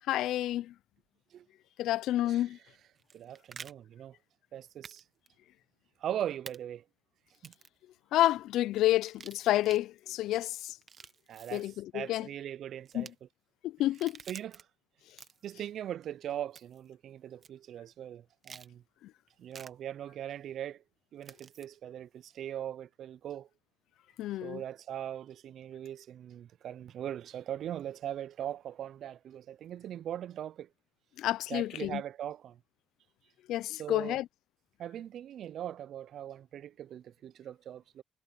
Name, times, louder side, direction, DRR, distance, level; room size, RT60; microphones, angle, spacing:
voice 1, 0.1-0.7 1.8-2.6 8.1-10.8 11.5-12.3 12.9-13.1 13.6-14.2 24.2-24.6 31.2-32.0 33.5-34.3, left 14 dB, 85° left, 0.3 m, -29 dB
sound 1, 3.0-3.7 4.8-5.0 5.3-5.4 6.5-6.6 7.3-7.8 9.0-9.8 10.7-11.7 12.9-13.1 13.8-14.6 15.1-15.5 16.6-16.9 17.4-17.5 18.4-18.7 19.5-19.7 21.2-21.7, right 6 dB, 45° right, 1.2 m, -49 dB
voice 2, 3.1-4.2 4.5-5.0 6.0-6.8 7.4-7.5 11.3-13.1 14.3-14.7 15.4-18.8 19.4-20.8 21.1-23.5 24.4-30.7 31.5-32.6 33.8-34.2 34.8-38.0, right 11 dB, 70° right, 0.4 m, -40 dB
cardioid pair, 90°, 0 cm